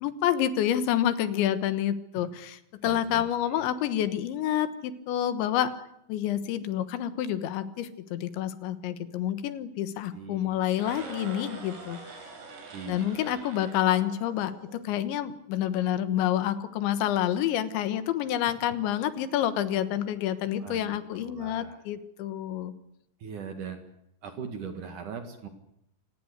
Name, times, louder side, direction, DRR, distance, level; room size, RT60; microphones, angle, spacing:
voice 1, 0.0-5.7 6.1-12.2 12.9-22.7, left 11 dB, 80° left, 12 dB, 3.6 m, -28 dB
voice 2, 2.8-3.2 3.5-3.7 10.1-10.7 12.7-13.4 18.4-18.5 20.6-20.8 21.1-21.8 23.2-23.8 24.2-25.5, right 6 dB, 55° right, 7 dB, 2.9 m, -41 dB
sound 1, 10.7-14.9, right 4 dB, 70° right, 7.2 m, -44 dB
26.0 x 19.0 x 8.1 m, 0.79 s
omnidirectional pair, 5.2 m